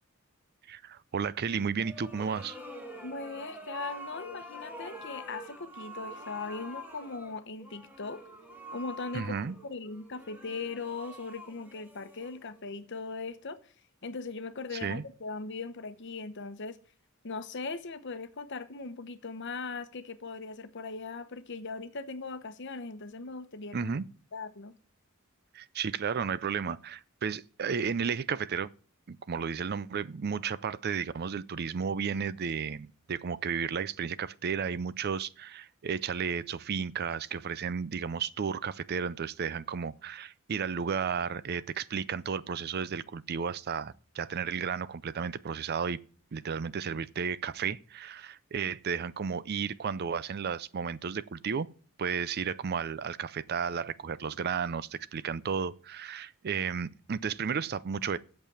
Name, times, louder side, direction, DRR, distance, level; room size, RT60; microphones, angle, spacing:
voice 1, 0.7-2.6 9.1-9.6 14.8-15.0 23.7-24.0 25.5-28.7 29.1-46.0 46.3-51.7 52.0-58.2, right 6 dB, 50° right, 0.5 m, -33 dB
sound 1, 1.7-12.7, equal, 10° right, 2.0 m, -46 dB
voice 2, 3.0-8.2 8.7-9.4 9.6-13.6 14.0-16.8 17.2-23.9 24.3-24.7, left 4 dB, 60° left, 0.9 m, -39 dB
8.2 x 6.7 x 7.3 m
head